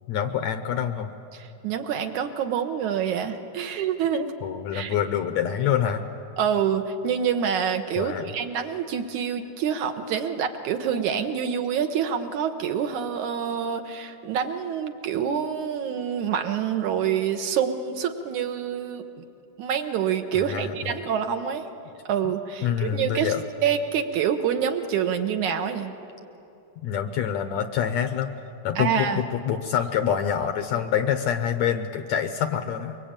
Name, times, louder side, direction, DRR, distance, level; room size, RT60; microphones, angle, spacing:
voice 1, 0.1-1.1 4.4-6.0 8.0-8.3 20.5-21.1 22.2-22.3 22.6-23.4 26.8-28.3 28.6-33.0, left 9 dB, 70° left, 9 dB, 1.8 m, -26 dB
voice 2, 1.3-4.3 4.7-4.9 6.4-19.2 19.6-21.7 22.1-23.3 23.6-25.9 28.8-29.2, right 8 dB, 70° right, 6 dB, 2.3 m, -26 dB
24.0 x 23.5 x 8.9 m, 2.8 s
omnidirectional pair, 3.9 m